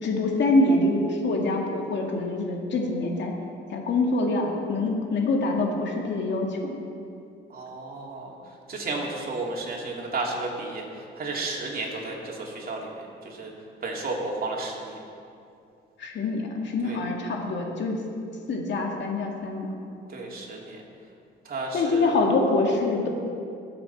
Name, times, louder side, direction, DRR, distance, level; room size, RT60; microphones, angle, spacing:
voice 1, 0.0-3.3 3.7-6.8 16.0-18.0 18.5-19.7 21.7-23.1, left 2 dB, 65° left, 0 dB, 2.0 m, -25 dB
voice 2, 7.5-8.3 8.7-12.9 13.2-13.5 13.8-15.0 16.8-17.0 20.1-20.8 21.4-22.1, right 3 dB, 50° right, -2 dB, 2.9 m, -32 dB
20.5 x 7.6 x 4.3 m, 2.6 s
cardioid pair, 90°, 20 cm